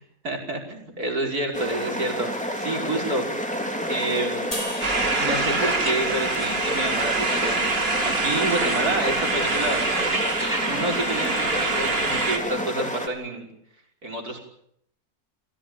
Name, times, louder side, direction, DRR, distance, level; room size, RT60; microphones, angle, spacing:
voice 1, 0.2-2.3 2.6-3.3 3.9-4.6 5.2-7.6 7.9-9.8 10.7-13.5 14.0-14.4, right 2 dB, 80° right, 2 dB, 6.0 m, -28 dB
sound 1, 1.5-13.1, equal, 5° left, 3.5 m, -30 dB
sound 2, 4.5-7.8, left 1 dB, 25° left, 4.1 m, -39 dB
sound 3, 4.8-12.4, right 3 dB, 40° right, 2.5 m, -25 dB
28.5 x 17.0 x 9.0 m, 0.73 s
omnidirectional pair, 1.6 m